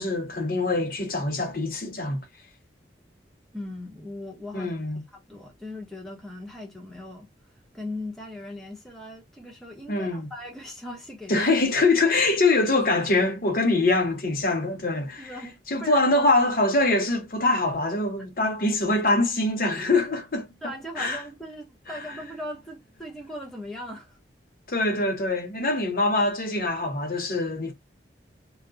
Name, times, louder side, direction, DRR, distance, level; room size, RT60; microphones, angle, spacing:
voice 1, 0.0-2.2 4.5-5.0 9.9-10.3 11.3-15.3 15.7-20.5 21.0-21.2 21.9-22.0 24.7-27.7, left 2 dB, 50° left, 0.8 m, -24 dB
voice 2, 3.5-4.7 5.1-7.3 7.7-11.5 15.2-16.1 20.6-24.2, left 1 dB, ahead, 0.8 m, -39 dB
2.3 x 2.1 x 3.8 m
head